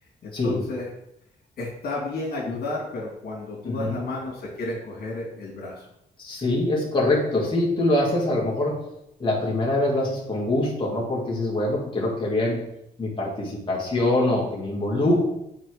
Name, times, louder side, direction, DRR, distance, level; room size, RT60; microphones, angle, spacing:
voice 1, 0.2-0.9 1.6-5.9, left 2 dB, 65° left, -4 dB, 2.7 m, -32 dB
voice 2, 3.6-4.0 6.2-8.8 9.2-12.6 13.0-15.2, left 1 dB, 30° left, -5 dB, 2.4 m, -24 dB
7.4 x 4.7 x 5.0 m, 0.80 s
cardioid pair, 110°, 17 cm